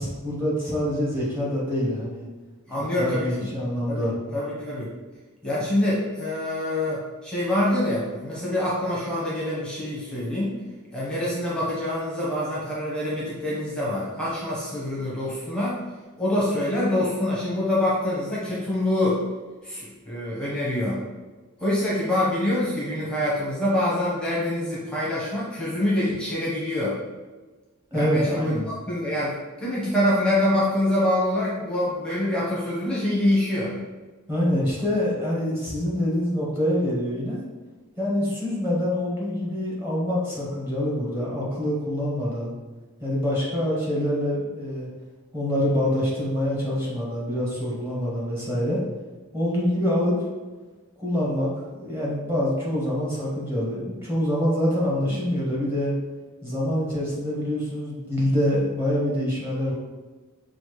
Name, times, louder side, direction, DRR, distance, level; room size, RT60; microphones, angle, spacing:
voice 1, 0.0-2.3 3.0-4.1 27.9-28.7 34.3-37.4 38.0-42.5 43.0-44.9 45.3-48.8 49.3-50.2 51.0-55.9 56.4-59.7, equal, 10° right, -6 dB, 1.3 m, -25 dB
voice 2, 2.7-3.5 3.9-4.9 5.4-10.5 10.9-15.8 16.2-19.2 19.6-21.0 21.6-27.0 27.9-28.6 28.9-33.7, left 1 dB, 5° left, -7 dB, 1.0 m, -25 dB
5.5 x 2.5 x 3.1 m, 1.3 s
head